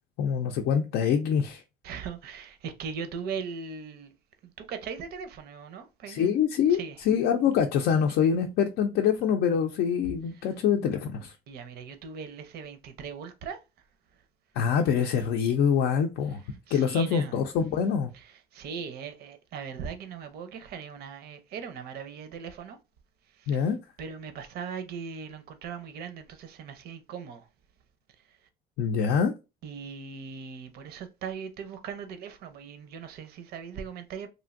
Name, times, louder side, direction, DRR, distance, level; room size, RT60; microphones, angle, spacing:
voice 1, 0.2-1.6 6.1-6.8 7.1-11.3 14.6-16.4 16.7-18.1 23.5-23.8 28.8-29.3, left 7 dB, 80° left, 0.4 m, -25 dB
voice 2, 1.8-4.1 4.4-6.4 6.7-7.0 8.0-8.1 10.3-10.5 11.1-13.6 16.7-17.3 18.1-22.8 23.3-23.7 24.0-27.5 29.6-34.3, right 6 dB, 70° right, 0.6 m, -39 dB
3.1 x 2.5 x 2.4 m
cardioid pair, 110°, 17 cm